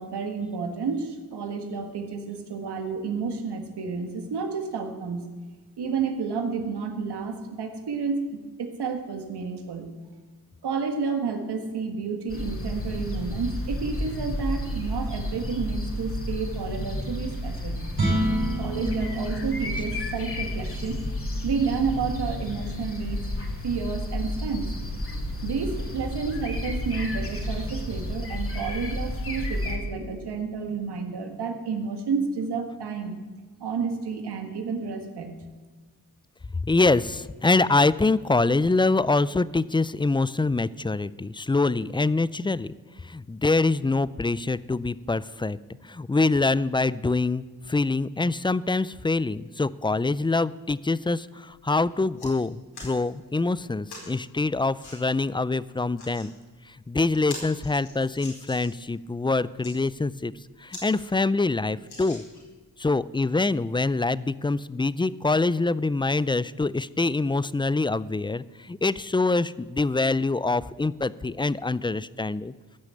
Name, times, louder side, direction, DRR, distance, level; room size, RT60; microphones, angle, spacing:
voice 1, 0.0-5.3 5.8-8.3 8.6-9.9 10.6-17.9 18.6-23.2 23.6-24.7 25.1-33.2 33.6-35.4, right 5 dB, 85° right, 5 dB, 1.7 m, -30 dB
sound 1, 12.3-29.8, left 1 dB, 35° left, 2.8 m, -31 dB
sound 2, 17.9-24.3, right 1 dB, 65° right, 5.0 m, -32 dB
voice 2, 36.6-42.7 43.0-45.6 45.8-56.3 56.7-60.3 60.6-62.2 62.8-72.5, left 3 dB, 15° left, 19 dB, 0.4 m, -25 dB
sound 3, 51.5-51.6 51.9-52.3 52.7-53.0 53.9-54.1 54.8-55.0 55.8-56.3 56.7-56.8 57.1-58.8 59.4-59.7 60.3-60.4 60.7-60.9 61.2-61.3 61.8-62.6 63.2-63.3, left 2 dB, 75° left, 4.5 m, -42 dB
15.5 x 6.4 x 8.5 m, 1.4 s
cardioid pair, 60°, 39 cm